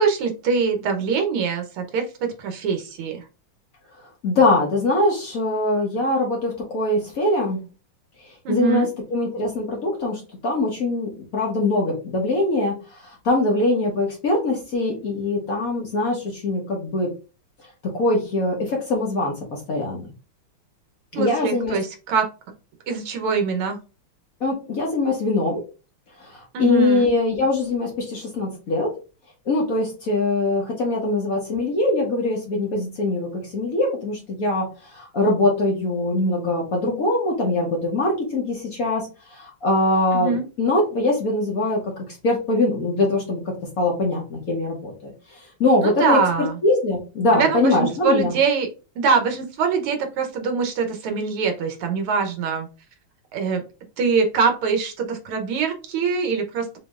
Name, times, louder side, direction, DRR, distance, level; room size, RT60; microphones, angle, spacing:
voice 1, 0.0-3.2 8.4-8.9 21.1-22.3 22.9-23.8 26.5-27.1 40.1-40.4 45.8-46.5 47.3-48.7 49.0-52.7 53.3-53.6 54.0-56.7, right 5 dB, 80° right, 5 dB, 1.7 m, -23 dB
voice 2, 4.2-7.6 8.5-17.1 17.9-20.1 21.2-21.8 24.4-25.6 26.2-28.9 29.5-34.7 34.9-41.8 42.2-45.1 45.6-48.3, left 2 dB, 50° left, -1 dB, 1.2 m, -22 dB
6.1 x 2.8 x 2.3 m, 0.32 s
omnidirectional pair, 2.4 m